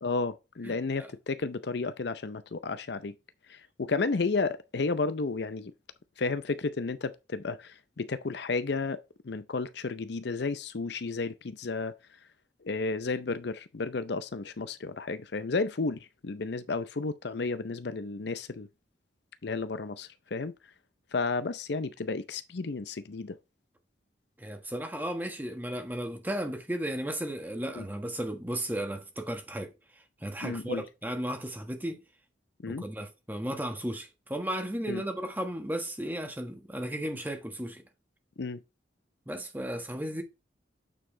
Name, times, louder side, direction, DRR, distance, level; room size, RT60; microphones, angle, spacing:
voice 1, 0.0-3.1 3.5-5.7 6.2-11.9 12.6-18.7 19.4-20.6 21.1-23.4 27.7-27.8 30.4-30.8 32.6-32.8 34.9-35.0 38.4-38.6, left 3 dB, 60° left, 0.6 m, -32 dB
voice 2, 0.6-1.1 24.4-32.0 32.7-37.8 39.3-40.2, right 1 dB, 10° right, 1.4 m, -35 dB
8.8 x 4.7 x 3.3 m
head